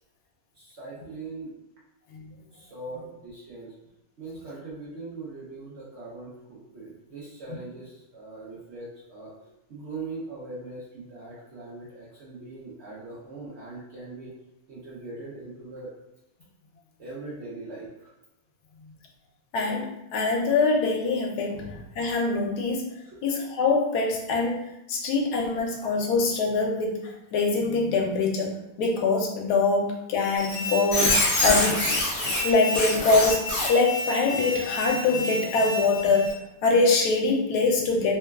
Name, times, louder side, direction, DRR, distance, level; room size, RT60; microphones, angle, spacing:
voice 1, 0.6-1.5 2.5-3.7 4.2-9.3 9.7-14.3 14.7-15.9 17.0-18.1 23.0-23.2 25.5-25.6, right 3 dB, 60° right, -7 dB, 0.8 m, -40 dB
voice 2, 19.5-22.9 23.2-31.8 32.4-36.3 36.6-38.2, left 3 dB, 85° left, 0 dB, 1.1 m, -24 dB
Squeak, 30.4-36.3, left 1 dB, 60° left, 0.5 m, -27 dB
3.0 x 2.2 x 2.2 m, 0.88 s
omnidirectional pair, 1.6 m